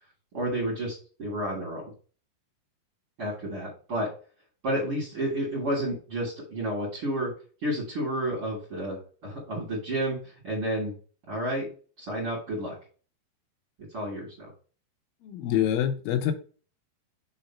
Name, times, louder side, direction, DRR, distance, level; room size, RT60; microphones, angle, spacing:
voice 1, 0.3-1.8 3.2-4.1 4.6-7.3 7.6-10.2 10.4-11.0 11.3-11.7 12.0-12.8 13.9-14.5, right 1 dB, 40° right, 2.7 m, -30 dB
voice 2, 15.2-16.3, left 10 dB, 75° left, 2.4 m, -26 dB
5.7 x 3.7 x 5.7 m
omnidirectional pair, 4.9 m